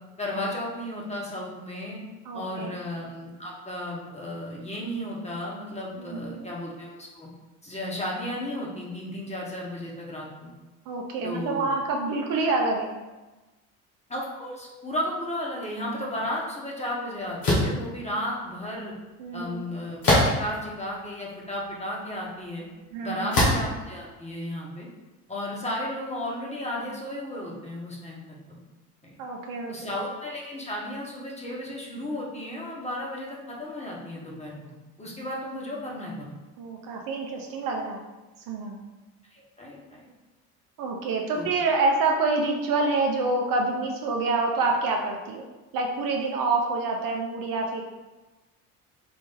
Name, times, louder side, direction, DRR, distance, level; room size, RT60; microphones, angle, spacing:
voice 1, 0.2-2.0 2.3-7.3 7.6-10.5 11.2-11.7 14.1-18.9 19.3-22.6 23.0-24.9 25.3-28.2 28.5-28.6 29.0-29.1 29.7-36.4 39.3-40.0 41.3-41.5, left 1 dB, 15° left, -3 dB, 1.3 m, -34 dB
voice 2, 2.3-2.7 6.0-6.5 10.9-13.0 19.2-19.7 22.9-23.3 29.2-29.9 36.6-38.0 38.5-38.8 40.8-45.5 45.7-47.8, right 3 dB, 50° right, 1 dB, 0.7 m, -27 dB
sound 1, 17.4-17.8 20.0-20.6 21.3-21.4 23.3-23.7, left 1 dB, 85° left, 1.5 m, -21 dB
4.3 x 2.5 x 3.8 m, 1.1 s
hypercardioid pair, 65°, 43 cm